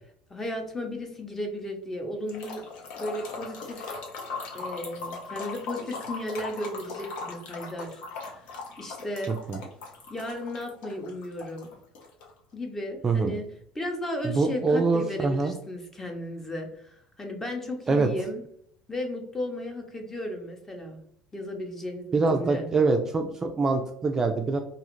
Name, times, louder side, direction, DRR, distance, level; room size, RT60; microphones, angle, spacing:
voice 1, 0.3-2.6 3.0-4.0 4.5-8.5 8.8-9.3 10.1-11.7 12.5-13.4 13.7-18.4 18.9-21.0 21.3-22.7, left 1 dB, 15° left, 3 dB, 0.7 m, -35 dB
sound 1, 2.3-12.3, left 4 dB, 75° left, 0.8 m, -39 dB
voice 2, 9.3-9.6 13.0-13.3 14.2-15.5 17.9-18.1 22.1-24.6, right 3 dB, 25° right, 4 dB, 0.3 m, -24 dB
2.4 x 2.4 x 3.0 m, 0.67 s
supercardioid pair, 105°, 2 cm